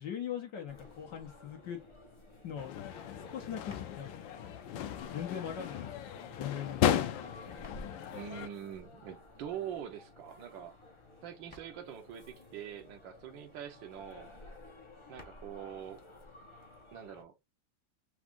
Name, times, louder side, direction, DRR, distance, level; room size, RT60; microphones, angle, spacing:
voice 1, 0.0-1.8 2.4-2.7 3.2-4.1 4.9-7.3, left 9 dB, 70° left, 1.7 m, -41 dB
sound 1, 0.7-17.2, left 2 dB, 25° left, 0.7 m, -53 dB
sound 2, 2.6-8.5, left 10 dB, 85° left, 1.3 m, -35 dB
voice 2, 8.1-10.7 11.2-14.3 15.1-16.0 16.9-17.3, right 9 dB, 80° right, 1.6 m, -44 dB
4.8 x 2.4 x 3.6 m
omnidirectional pair, 2.0 m